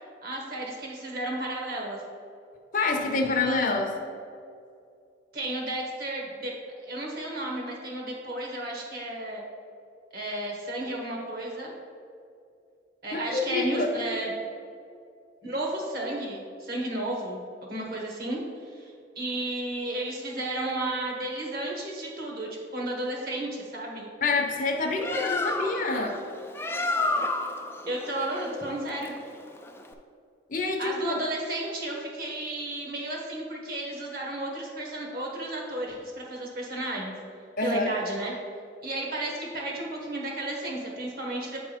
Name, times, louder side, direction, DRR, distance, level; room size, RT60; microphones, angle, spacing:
voice 1, 0.2-2.0 5.3-6.5 6.8-9.4 10.1-11.7 13.0-14.3 15.4-17.4 17.7-24.1 27.9-29.1 30.8-37.1 37.6-38.3 38.8-41.6, right 1 dB, 55° right, -1 dB, 1.4 m, -33 dB
voice 2, 2.7-3.9 13.1-13.9 24.2-26.2 30.5-31.2 37.6-37.9, left 3 dB, 45° left, 2 dB, 0.7 m, -27 dB
Bird, 24.8-29.9, left 2 dB, 15° left, 0.3 m, -31 dB
8.6 x 3.5 x 5.0 m, 2.4 s
head